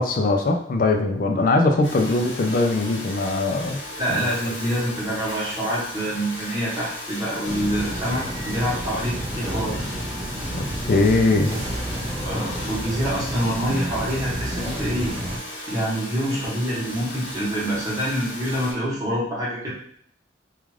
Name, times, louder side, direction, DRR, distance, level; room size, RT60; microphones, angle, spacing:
voice 1, 0.0-3.8 4.1-4.2 4.4-4.5 10.5-11.5, left 2 dB, 45° left, 4 dB, 0.3 m, -21 dB
Domestic sounds home sounds, 1.8-18.7, left 1 dB, 65° left, 0.8 m, -36 dB
voice 2, 4.0-9.8 11.5-11.6 12.2-15.1 15.7-19.7, equal, 15° right, -7 dB, 0.9 m, -26 dB
sound 1, 7.4-15.4, right 1 dB, 35° right, 0.4 m, -30 dB
2.4 x 2.3 x 3.1 m, 0.64 s
head